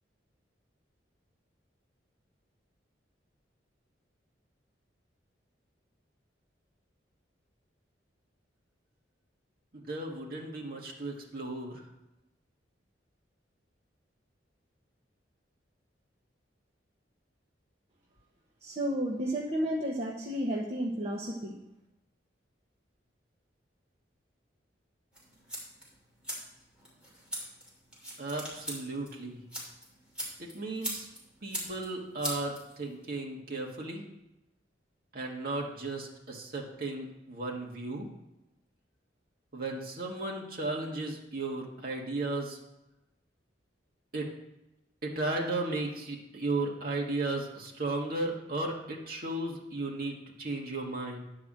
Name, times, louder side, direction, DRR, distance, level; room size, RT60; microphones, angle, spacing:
voice 1, 9.7-11.8 28.2-29.4 30.4-31.1 31.4-34.0 35.1-38.1 39.5-42.6 44.1-44.3 45.0-51.2, right 2 dB, 50° right, -1 dB, 1.7 m, -35 dB
voice 2, 18.6-21.6, equal, 35° right, -3 dB, 1.0 m, -32 dB
sound 1, 25.1-33.1, equal, 5° right, 3.0 m, -42 dB
10.5 x 4.8 x 7.4 m, 0.94 s
head